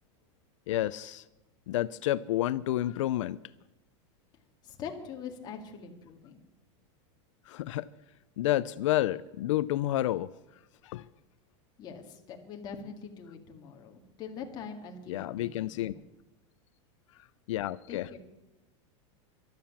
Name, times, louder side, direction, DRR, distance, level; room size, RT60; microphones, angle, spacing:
voice 1, 0.7-1.2 1.7-3.4 7.5-7.9 8.4-10.3 10.8-11.1 15.1-15.9 17.5-18.1, left 14 dB, 85° left, 15 dB, 0.5 m, -30 dB
voice 2, 4.6-6.4 11.8-16.0 17.9-18.2, left 6 dB, 25° left, 2 dB, 2.0 m, -43 dB
15.0 x 12.0 x 7.2 m, 0.99 s
supercardioid pair, 170°, 16 cm